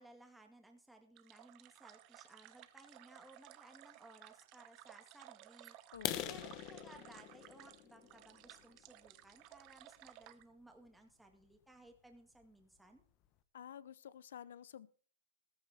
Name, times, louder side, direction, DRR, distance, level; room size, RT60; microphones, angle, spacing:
voice 1, 0.0-5.8 6.3-13.0, right 2 dB, 5° right, 4 dB, 1.9 m, -60 dB
sound 1, 1.2-10.4, right 15 dB, 40° right, 0.9 m, -58 dB
voice 2, 5.9-6.5 13.5-14.9, left 9 dB, 70° left, 18 dB, 0.9 m, -52 dB
sound 2, 5.9-9.7 10.2-10.4 10.9-11.0 11.4-11.6 11.9-12.0 12.4-12.5 12.8-13.3, left 13 dB, 35° left, 1.1 m, -44 dB
14.0 x 14.0 x 3.5 m, 0.42 s
hypercardioid pair, 125°, 0 cm